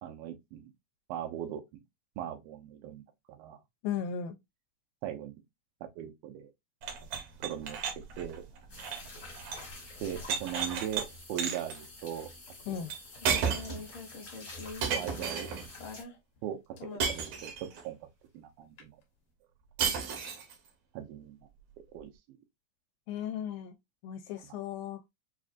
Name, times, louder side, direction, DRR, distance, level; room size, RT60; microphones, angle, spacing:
voice 1, 0.0-0.7 1.1-1.8 2.2-3.0 3.3-3.6 5.0-5.3 6.0-6.5 7.4-7.8 8.2-8.4 10.0-12.3 12.7-12.8 14.9-15.5 16.4-16.6 17.1-18.1 18.3-19.0 20.9-21.4 21.9-22.4, right 10 dB, 85° right, 2.5 m, -39 dB
voice 2, 3.8-4.4 12.7-12.9 23.1-23.8 24.0-25.0, left 8 dB, 85° left, 2.3 m, -36 dB
sound 1, 6.8-9.7 10.0-11.0 11.4-11.8 12.9-13.0 13.2-13.8 14.8-15.7 17.0-17.8 19.8-20.5, right 6 dB, 70° right, 1.6 m, -33 dB
sound 2, 8.7-16.0, left 2 dB, 45° left, 1.0 m, -48 dB
sound 3, 12.5-16.4 16.8-17.5 18.8-18.9, left 3 dB, 60° left, 1.4 m, -45 dB
6.1 x 2.4 x 2.5 m
omnidirectional pair, 4.1 m